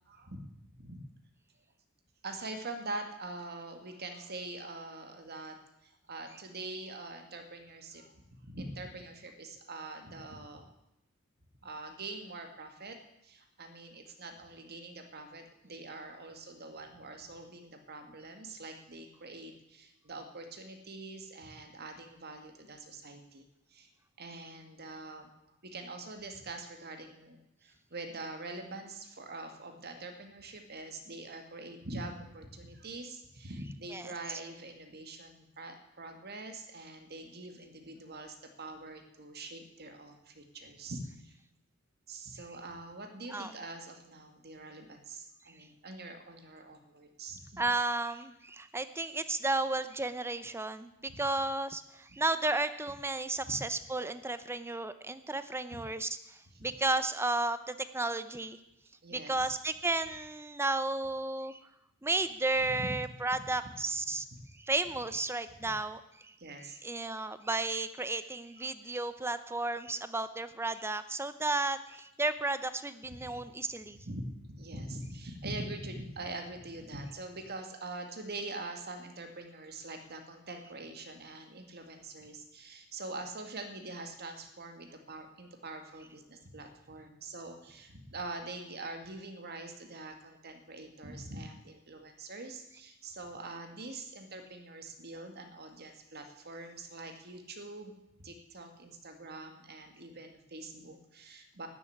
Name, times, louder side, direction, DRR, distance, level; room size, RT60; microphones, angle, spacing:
voice 1, 0.1-1.0 2.2-10.7 11.6-13.0 13.2-23.9 24.2-41.3 42.1-47.7 53.5-53.6 56.5-56.6 59.0-59.5 62.6-62.9 64.3-64.4 65.6-65.7 66.4-66.8 68.6-68.7 73.2-73.6 73.9-97.9 98.2-101.7, right 2 dB, 50° right, 5 dB, 2.1 m, -44 dB
voice 2, 47.6-50.9 51.2-58.6 59.1-61.6 62.0-64.2 64.6-66.3 66.8-74.0, right 2 dB, 10° right, 12 dB, 0.7 m, -33 dB
13.0 x 8.0 x 10.0 m, 0.84 s
head